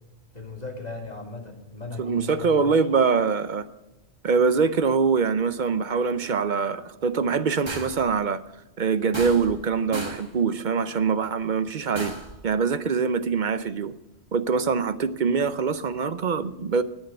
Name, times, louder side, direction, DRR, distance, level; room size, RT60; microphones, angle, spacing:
voice 1, 0.3-2.9, left 3 dB, 35° left, 1 dB, 2.5 m, -37 dB
voice 2, 2.0-3.6 4.2-8.4 8.8-12.1 12.4-13.9 14.3-16.8, right 5 dB, 50° right, 13 dB, 0.7 m, -24 dB
sound 1, 7.7-8.1 9.1-9.7 9.9-10.3 11.9-12.4, right 2 dB, 25° right, 1.4 m, -34 dB
19.5 x 6.5 x 6.5 m, 1.0 s
omnidirectional pair, 1.1 m